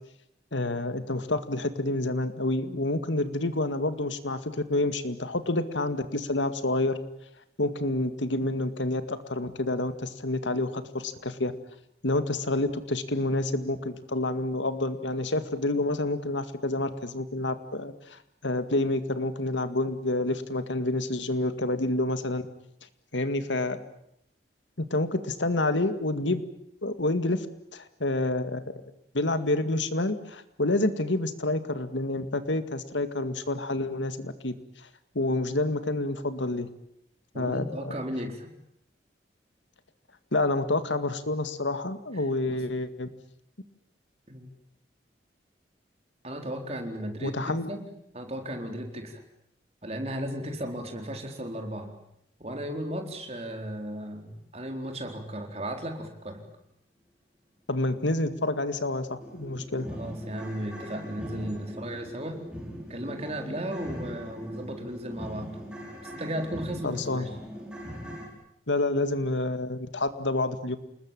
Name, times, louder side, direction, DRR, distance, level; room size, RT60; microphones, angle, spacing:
voice 1, 0.5-7.0 7.6-11.5 12.0-22.4 23.1-23.8 24.8-26.4 26.8-27.5 27.7-28.8 29.1-34.9 35.1-36.7 37.3-37.9 40.3-43.1 47.2-47.7 57.7-59.9 66.8-67.3 68.7-70.8, left 2 dB, 85° left, 10 dB, 2.2 m, -28 dB
voice 2, 37.3-38.5 42.1-42.6 44.3-44.5 46.2-47.4 47.7-47.9 48.1-49.2 49.8-51.9 52.4-56.4 59.9-62.5 62.9-65.6 66.0-67.4, equal, 35° right, 4 dB, 4.2 m, -35 dB
sound 1, 59.2-68.3, equal, 5° right, 6.0 m, -40 dB
28.5 x 20.5 x 9.0 m, 0.76 s
head